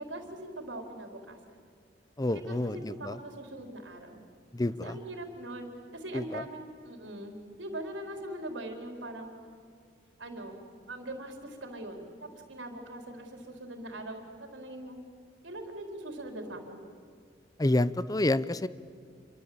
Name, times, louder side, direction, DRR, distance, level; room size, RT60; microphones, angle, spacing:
voice 1, 0.0-1.6 2.3-4.2 4.8-6.6 6.8-9.3 10.2-10.5 10.9-14.2 14.5-15.0 15.4-16.8, right 1 dB, 80° right, 4 dB, 4.4 m, -41 dB
voice 2, 2.2-3.2 4.5-5.0 6.1-6.4 17.6-18.7, left 1 dB, 20° left, 16 dB, 0.7 m, -28 dB
28.0 x 24.0 x 8.8 m, 2.1 s
head